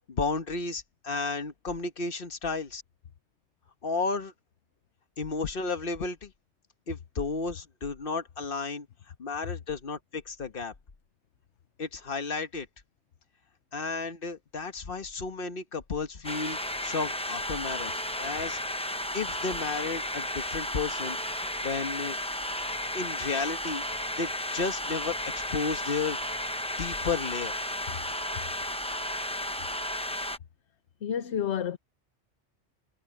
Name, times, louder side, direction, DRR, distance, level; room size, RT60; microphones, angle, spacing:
voice 1, 0.1-2.8 3.8-4.3 5.2-6.3 6.9-8.9 9.2-10.7 11.8-12.7 13.7-17.9 18.2-18.6 19.1-22.2 22.9-23.8 24.2-26.2 26.8-27.5, left 4 dB, 50° left, 1.4 m, -33 dB
sound 1, 16.2-30.4, left 1 dB, 5° left, 0.7 m, -33 dB
voice 2, 31.0-31.8, left 9 dB, 70° left, 1.1 m, -30 dB
omnidirectional pair, 1.2 m